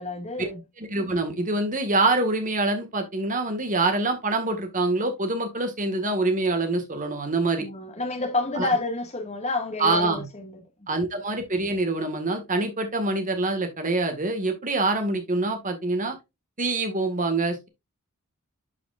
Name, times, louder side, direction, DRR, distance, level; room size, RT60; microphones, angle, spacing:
voice 1, 0.0-0.6 7.6-10.9, left 3 dB, 30° left, 1.9 m, -29 dB
voice 2, 0.8-7.7 8.6-8.7 9.8-10.3 10.9-16.2 16.6-17.7, right 2 dB, 35° right, 1.8 m, -25 dB
11.0 x 5.1 x 2.5 m
head